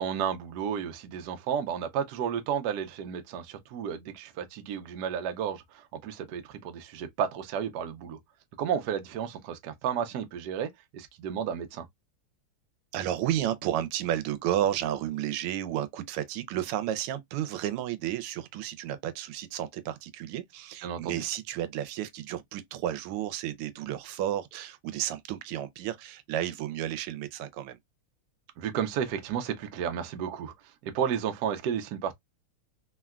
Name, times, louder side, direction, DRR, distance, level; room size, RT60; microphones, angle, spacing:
voice 1, 0.0-8.2 8.6-11.9 20.8-21.2 28.6-32.1, right 8 dB, 70° right, 0.9 m, -32 dB
voice 2, 12.9-27.8, right 11 dB, 90° right, 1.5 m, -32 dB
3.7 x 2.2 x 2.3 m
omnidirectional pair, 2.4 m